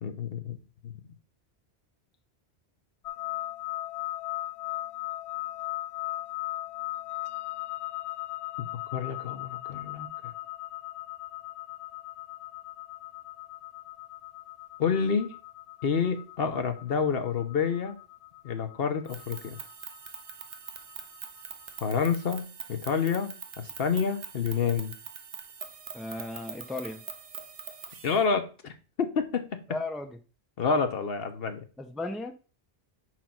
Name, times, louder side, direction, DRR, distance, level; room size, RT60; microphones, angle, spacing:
voice 1, 0.0-0.6 0.8-0.9 8.6-8.7 8.9-10.1 14.8-15.3 15.8-18.0 18.4-19.6 21.8-24.9 28.0-29.6 30.6-31.6, left 6 dB, 60° left, 7 dB, 1.0 m, -28 dB
sound 1, 3.0-22.1, left 17 dB, 85° left, 0.8 m, -38 dB
sound 2, 19.0-28.2, right 7 dB, 65° right, 1.0 m, -44 dB
voice 2, 25.9-27.0 29.7-30.2 31.8-32.3, left 2 dB, ahead, 5 dB, 0.5 m, -35 dB
5.2 x 4.6 x 5.8 m, 0.36 s
omnidirectional pair, 1.1 m